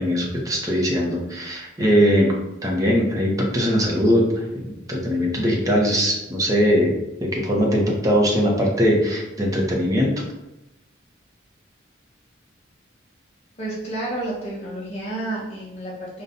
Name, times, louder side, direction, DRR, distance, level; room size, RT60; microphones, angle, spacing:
voice 1, 0.0-2.3 2.6-6.9 7.3-10.1, equal, 20° right, -2 dB, 0.6 m, -20 dB
voice 2, 13.6-16.2, right 1 dB, 35° left, -7 dB, 0.7 m, -30 dB
5.3 x 2.2 x 2.6 m, 0.94 s
head